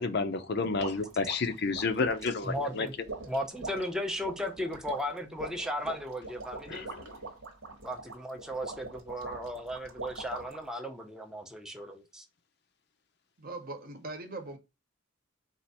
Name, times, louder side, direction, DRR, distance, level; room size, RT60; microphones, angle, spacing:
voice 1, 0.0-2.9 6.7-7.1, left 4 dB, 55° left, 0.5 m, -30 dB
sound 1, 0.8-10.7, right 3 dB, 90° right, 1.2 m, -43 dB
voice 2, 2.4-2.9 3.3-6.9 7.8-12.3, equal, 5° right, 0.6 m, -36 dB
voice 3, 13.4-14.6, right 2 dB, 45° right, 0.9 m, -41 dB
4.4 x 2.5 x 3.9 m
head